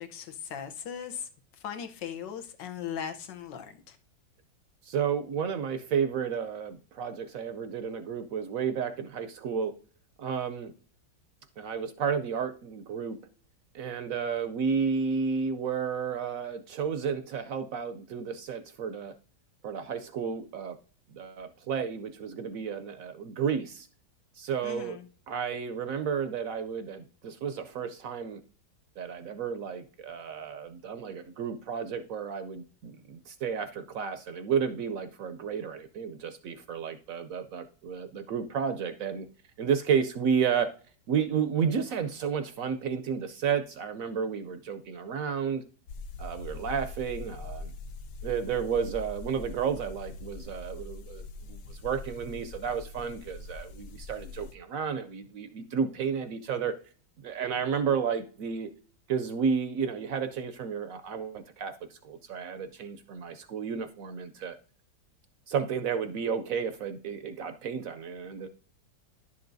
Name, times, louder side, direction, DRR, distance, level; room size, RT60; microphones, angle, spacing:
voice 1, 0.0-4.0 24.6-25.1, left 8 dB, 85° left, 7 dB, 1.5 m, -39 dB
voice 2, 4.8-9.7 10.2-10.7 11.6-13.2 13.7-19.1 19.6-20.8 21.1-23.9 24.4-25.0 25.3-28.4 29.0-39.3 39.6-40.7 41.1-45.6 46.2-47.7 48.2-56.7 57.2-58.7 59.1-64.6 65.5-68.5, right 6 dB, 70° right, 10 dB, 0.8 m, -32 dB
sound 1, 45.9-54.5, left 2 dB, 70° left, 0.9 m, -42 dB
11.0 x 6.9 x 2.6 m, 0.40 s
omnidirectional pair, 1.9 m